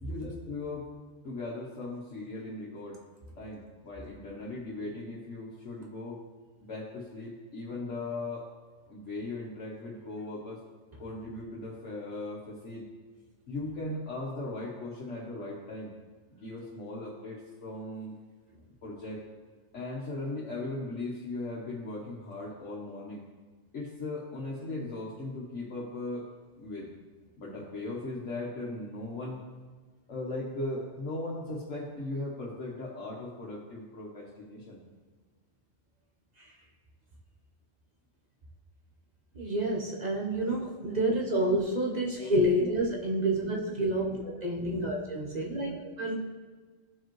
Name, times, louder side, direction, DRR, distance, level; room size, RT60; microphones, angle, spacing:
voice 1, 0.0-0.9 1.2-3.0 3.4-6.2 6.6-8.4 8.9-10.6 11.0-12.9 13.5-15.9 16.3-18.2 18.8-19.2 19.7-23.3 23.7-26.3 26.6-26.9 27.4-29.4 30.1-34.8 40.9-41.1 41.9-42.7 43.2-43.5 43.9-44.2 44.6-44.9 45.3-45.9, left 2 dB, 70° left, -6 dB, 1.5 m, -38 dB
voice 2, 39.3-46.1, right 1 dB, 35° right, -2 dB, 1.1 m, -29 dB
14.5 x 4.8 x 3.1 m, 1.4 s
omnidirectional pair, 1.3 m